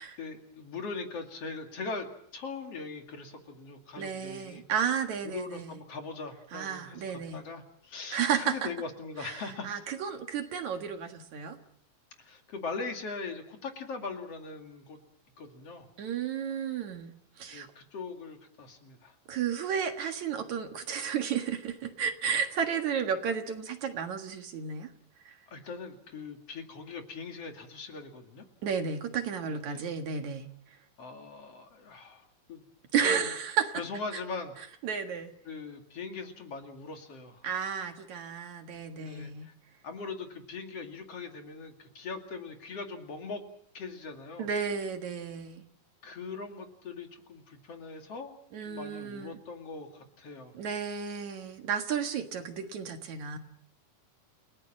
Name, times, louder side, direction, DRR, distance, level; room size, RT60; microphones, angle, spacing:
voice 1, 0.2-2.1 2.3-4.6 5.2-9.7 12.2-15.0 15.4-15.9 17.5-19.1 25.5-28.5 29.5-29.8 31.0-32.6 33.0-33.3 33.8-34.5 35.4-37.4 39.0-39.5 39.8-43.4 43.7-44.5 46.0-48.3 48.6-50.5, left 4 dB, 50° left, 5 dB, 3.1 m, -41 dB
voice 2, 4.0-5.7 6.5-7.4 8.1-8.7 9.2-11.6 16.0-17.7 19.3-24.9 25.3-25.4 28.6-30.5 32.9-33.8 34.8-35.3 37.4-39.5 44.4-45.6 48.5-49.4 50.5-53.4, right 7 dB, 60° right, 6 dB, 2.8 m, -32 dB
30.0 x 18.5 x 7.5 m, 0.65 s
omnidirectional pair, 3.9 m